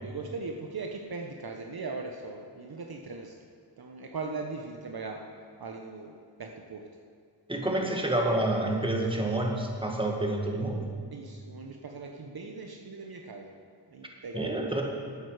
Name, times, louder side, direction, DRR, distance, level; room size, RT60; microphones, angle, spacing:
voice 1, 0.0-3.2 3.8-5.2 5.6-6.1 6.7-6.8 11.1-13.5 14.2-14.5, right 3 dB, 55° right, 2 dB, 1.0 m, -39 dB
voice 2, 7.5-10.8 14.3-14.8, right 1 dB, 10° right, 0 dB, 1.9 m, -28 dB
13.0 x 9.1 x 4.9 m, 2.1 s
cardioid pair, 65°, 45 cm